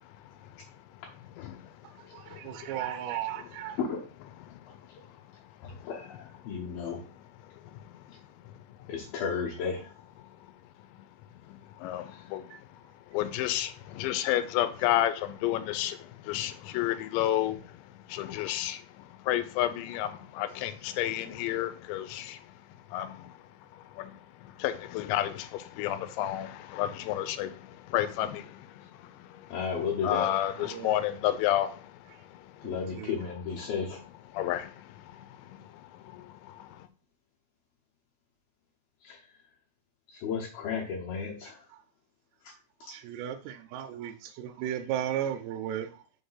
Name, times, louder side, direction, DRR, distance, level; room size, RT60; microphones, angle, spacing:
voice 1, 1.4-1.7 2.3-2.6 4.5-4.6 5.6-5.9 7.7-8.0 11.5-12.6 13.1-17.7 18.1-22.4 22.9-23.3 23.7-29.5 30.0-32.7 34.3-36.9, left 13 dB, 85° left, 3.0 m, -32 dB
voice 2, 2.0-3.8 12.5-12.6 30.6-31.0 32.6-33.1 41.7-41.8 42.9-46.0, right 10 dB, 80° right, 2.5 m, -35 dB
voice 3, 3.8-4.1 4.7-4.8 5.6-7.0 8.1-8.2 8.9-9.9 12.1-12.3 24.5-24.6 29.5-30.3 32.6-34.0 39.0-39.3 40.1-41.7 42.4-42.5 42.8-42.9, left 6 dB, 70° left, 2.5 m, -34 dB
6.6 x 3.5 x 5.6 m
omnidirectional pair, 5.1 m